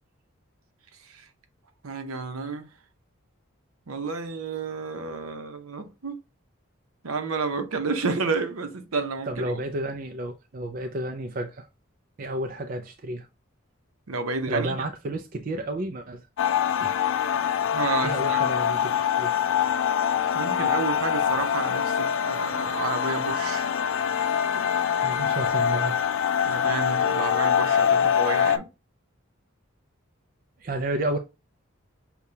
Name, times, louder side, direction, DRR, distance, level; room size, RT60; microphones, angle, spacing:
voice 1, 1.8-2.7 3.9-6.1 7.0-9.6 14.1-14.7 17.7-18.4 20.3-23.7 26.5-28.7, right 4 dB, 85° right, 0.8 m, -30 dB
voice 2, 9.2-11.7 12.2-13.3 14.5-16.3 16.8-17.0 18.0-19.3 24.5-24.7 25.0-26.0 30.6-31.2, right 1 dB, 40° right, 0.4 m, -31 dB
sound 1, 16.4-28.6, left 8 dB, 65° left, 0.3 m, -24 dB
6.6 x 2.3 x 2.7 m
head